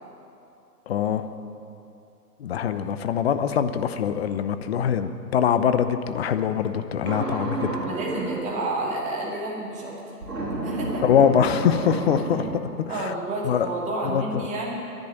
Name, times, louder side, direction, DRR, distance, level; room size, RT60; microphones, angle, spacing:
voice 1, 0.9-1.3 2.4-7.8 11.0-13.1 13.4-13.7 14.0-14.5, left 8 dB, 40° left, 11 dB, 0.8 m, -23 dB
sound 1, 7.1-8.5 10.2-12.6, right 2 dB, 80° right, 3.3 m, -30 dB
voice 2, 7.8-9.9 10.6-11.0 12.9-14.7, right 2 dB, 15° right, -3 dB, 2.7 m, -30 dB
12.0 x 10.5 x 9.8 m, 2.7 s
figure-of-eight pair, 135°, 48 cm